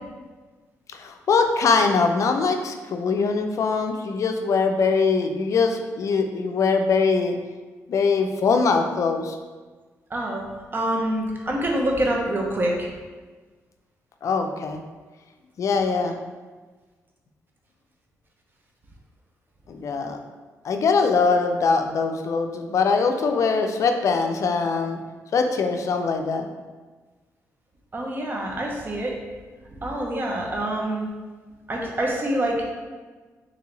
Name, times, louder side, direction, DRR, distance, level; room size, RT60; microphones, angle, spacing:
voice 1, 0.9-7.4 7.9-9.4 14.2-14.8 15.6-16.2 19.7-20.2 20.6-25.0 25.3-26.5, left 4 dB, 60° left, 5 dB, 0.4 m, -22 dB
voice 2, 10.1-10.4 10.7-12.9 27.9-29.1 29.8-31.1 31.7-32.6, right 1 dB, 35° right, 0 dB, 0.8 m, -26 dB
3.1 x 2.8 x 3.9 m, 1.4 s
cardioid pair, 80°, 6 cm